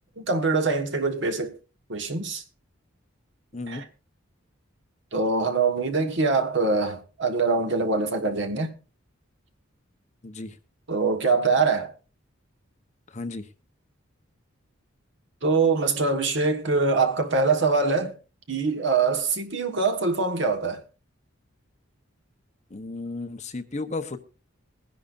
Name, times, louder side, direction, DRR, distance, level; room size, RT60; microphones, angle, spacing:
voice 1, 0.2-1.6 1.9-2.4 3.7-3.9 5.1-8.8 10.9-11.9 15.4-18.1 18.5-20.8, right 4 dB, 60° right, 1.4 m, -24 dB
voice 2, 3.5-3.8 10.2-10.5 13.1-13.4 22.7-24.2, left 3 dB, 35° left, 0.8 m, -33 dB
21.0 x 10.5 x 2.5 m
head